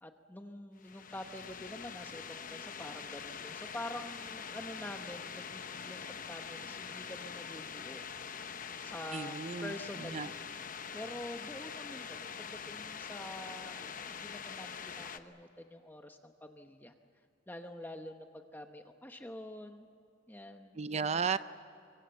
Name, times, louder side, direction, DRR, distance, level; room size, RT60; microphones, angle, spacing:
voice 1, 0.0-8.0 8.8-10.4 10.9-16.9 17.5-19.9 20.3-20.8, left 1 dB, 10° left, 5 dB, 0.9 m, -46 dB
sound 1, 0.8-15.2, left 6 dB, 45° left, 0.9 m, -44 dB
voice 2, 9.1-9.7 10.1-10.3 20.8-21.4, right 5 dB, 35° right, 14 dB, 0.5 m, -33 dB
25.0 x 23.0 x 7.7 m, 2.5 s
head